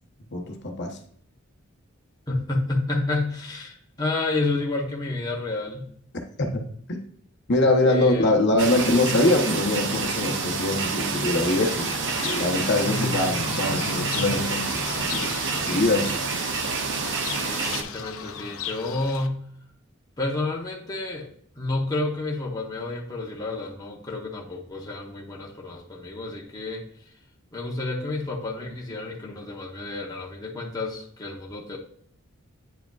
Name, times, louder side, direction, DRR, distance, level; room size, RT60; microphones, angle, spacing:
voice 1, 0.3-1.0 6.5-6.6 7.5-11.9 12.2-16.1, left 2 dB, 50° left, 2 dB, 0.9 m, -23 dB
voice 2, 2.3-5.9 7.8-8.4 17.4-19.4 20.2-21.3 21.6-27.1 27.5-31.8, left 2 dB, 20° left, -2 dB, 0.9 m, -30 dB
sound 1, 8.6-17.8, right 4 dB, 55° right, 0.7 m, -28 dB
Fowl / Bird, 11.4-19.3, left 6 dB, 70° left, 0.5 m, -35 dB
9.0 x 4.9 x 2.4 m, 0.63 s
head